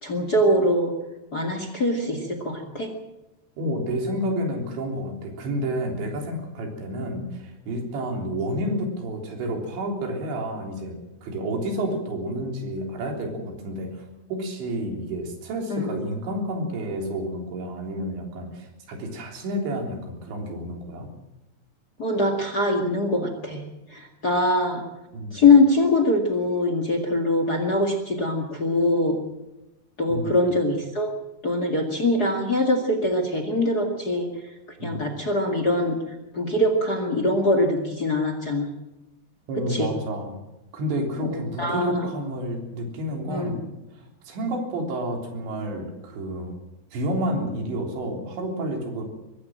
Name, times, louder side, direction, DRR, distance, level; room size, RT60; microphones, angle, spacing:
voice 1, 0.0-0.9 1.3-2.9 15.7-15.9 22.0-23.6 23.9-24.8 25.3-29.2 30.0-31.1 31.4-34.3 34.8-36.0 36.3-38.7 39.7-39.9 41.2-42.1 43.2-43.6, left 2 dB, 35° left, 6 dB, 1.6 m, -23 dB
voice 2, 3.6-11.0 11.2-14.1 14.3-21.1 25.1-25.4 30.1-30.4 34.8-35.1 39.5-40.4 40.7-43.6 43.9-46.6 46.9-49.0, right 1 dB, 90° right, 3 dB, 5.8 m, -30 dB
23.5 x 15.0 x 7.6 m, 0.97 s
omnidirectional pair, 5.0 m